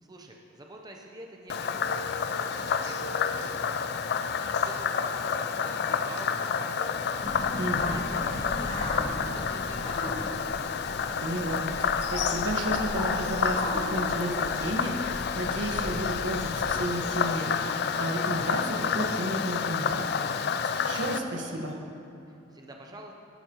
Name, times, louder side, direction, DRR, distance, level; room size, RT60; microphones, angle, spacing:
voice 1, 0.0-4.1 4.6-9.0 9.3-10.5 22.3-23.1, right 1 dB, 20° right, 1 dB, 0.6 m, -48 dB
Frog, 1.5-21.2, left 6 dB, 60° left, 0.4 m, -29 dB
sound 1, 7.2-16.6, equal, 35° left, 2.1 m, -37 dB
voice 2, 7.6-8.0 11.2-21.8, right 1 dB, 75° right, 1 dB, 1.4 m, -33 dB
13.0 x 11.5 x 3.0 m, 2.8 s
head